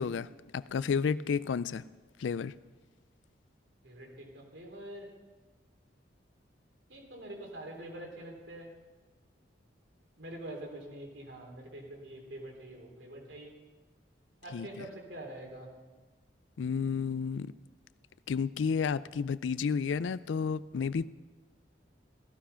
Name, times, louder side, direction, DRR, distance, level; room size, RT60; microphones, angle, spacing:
voice 1, 0.0-1.8 2.2-2.5 14.5-14.8 16.6-17.5 18.3-21.1, left 6 dB, 80° left, 17 dB, 0.4 m, -31 dB
voice 2, 3.8-5.1 6.9-8.7 10.2-13.5 14.4-15.7, right 1 dB, 75° right, 1 dB, 3.7 m, -45 dB
16.5 x 15.0 x 5.7 m, 1.3 s
head